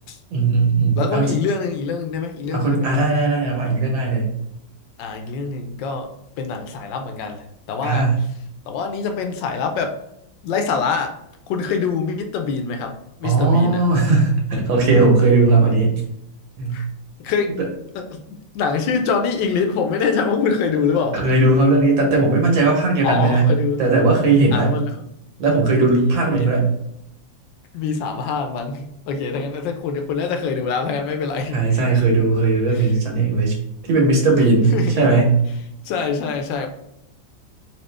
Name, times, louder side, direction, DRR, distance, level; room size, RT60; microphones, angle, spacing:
voice 1, 0.3-1.3 2.5-4.3 7.8-8.2 13.2-16.0 16.6-16.8 21.1-23.4 23.8-24.7 25.4-26.7 31.5-33.5 33.9-35.3, right 3 dB, 85° right, 0 dB, 1.9 m, -17 dB
voice 2, 1.0-2.9 5.0-6.1 6.4-8.1 8.7-10.0 10.4-11.2 11.5-12.9 13.2-13.8 16.7-16.9 17.2-17.6 17.9-21.2 23.0-23.8 24.5-25.0 25.8-26.6 27.7-31.8 32.7-33.3 34.7-35.0 35.8-36.7, left 5 dB, 80° left, 5 dB, 1.3 m, -24 dB
4.3 x 2.8 x 3.3 m, 0.78 s
omnidirectional pair, 2.0 m